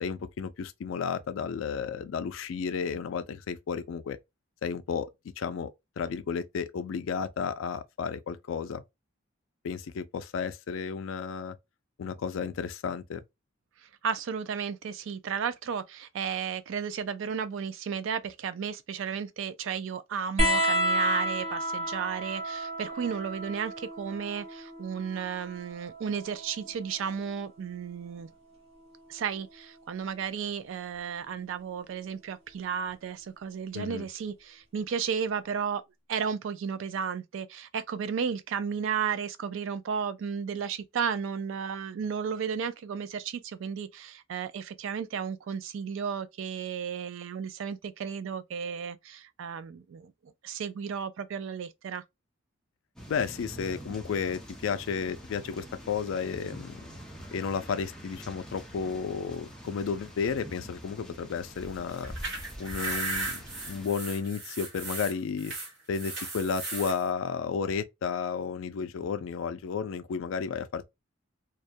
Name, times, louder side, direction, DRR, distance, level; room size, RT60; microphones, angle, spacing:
voice 1, 0.0-4.2 4.6-5.1 5.4-5.7 6.0-8.8 9.6-11.6 12.0-13.2 33.7-34.1 53.1-56.8 57.3-62.1 62.6-65.5 65.9-70.9, left 6 dB, 75° left, 0.4 m, -32 dB
voice 2, 14.0-28.3 29.1-35.8 36.1-50.1 50.4-52.0, right 7 dB, 70° right, 0.3 m, -33 dB
sound 1, 20.4-27.5 28.8-29.6 30.9-31.0, equal, 30° right, 0.8 m, -31 dB
sound 2, 53.0-63.9, equal, 5° left, 0.5 m, -45 dB
sound 3, 61.9-67.0, right 2 dB, 55° right, 1.2 m, -36 dB
2.3 x 2.1 x 2.6 m
head